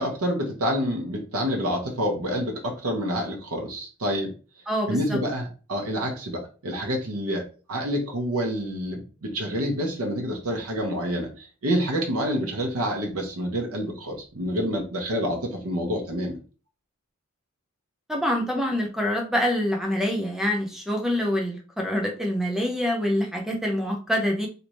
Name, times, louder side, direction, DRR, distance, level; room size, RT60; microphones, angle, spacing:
voice 1, 0.0-4.3 4.9-16.4, equal, 85° right, 1 dB, 0.9 m, -28 dB
voice 2, 4.7-5.2 18.1-24.5, equal, ahead, 1 dB, 0.6 m, -26 dB
3.3 x 2.7 x 3.0 m, 0.36 s
head